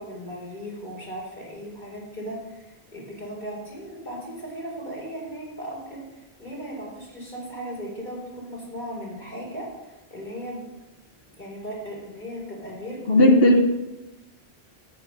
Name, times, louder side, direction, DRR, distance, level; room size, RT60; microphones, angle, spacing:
voice 1, 0.0-10.6 11.4-13.5, equal, 45° left, -4 dB, 4.4 m, -37 dB
voice 2, 13.1-13.6, left 1 dB, 65° left, 4 dB, 1.3 m, -15 dB
13.0 x 9.0 x 5.4 m, 1.0 s
omnidirectional pair, 1.1 m